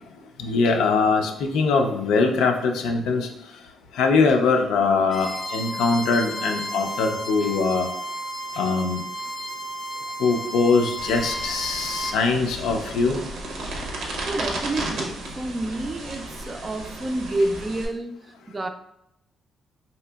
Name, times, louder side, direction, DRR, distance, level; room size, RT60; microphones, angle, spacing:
voice 1, 0.4-3.3 4.0-7.9 8.6-9.0 10.2-13.2, left 4 dB, 90° left, 4 dB, 0.4 m, -22 dB
Bowed string instrument, 5.1-12.2, right 1 dB, 20° left, 0.6 m, -33 dB
sound 1, 11.0-17.9, right 2 dB, 85° right, 0.7 m, -34 dB
voice 2, 14.3-18.7, right 1 dB, 25° right, 7 dB, 0.4 m, -29 dB
4.0 x 2.8 x 2.2 m, 0.81 s
cardioid pair, 90°, 0 cm